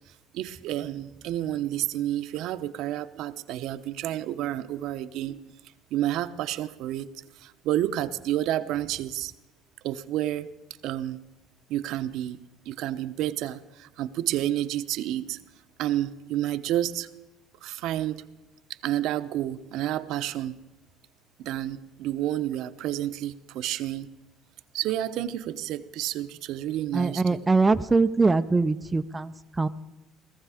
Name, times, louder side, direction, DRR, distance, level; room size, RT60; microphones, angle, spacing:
voice 1, 0.3-5.3 5.9-7.1 7.4-9.3 9.8-10.5 10.8-11.2 11.7-12.4 12.7-15.4 15.8-17.1 17.6-18.2 18.8-20.6 21.4-24.1 24.7-27.2, right 13 dB, 70° right, 10 dB, 0.8 m, -30 dB
voice 2, 26.9-29.7, right 3 dB, 15° right, 8 dB, 0.5 m, -23 dB
18.0 x 14.5 x 5.0 m, 1.0 s
cardioid pair, 130°, 0 cm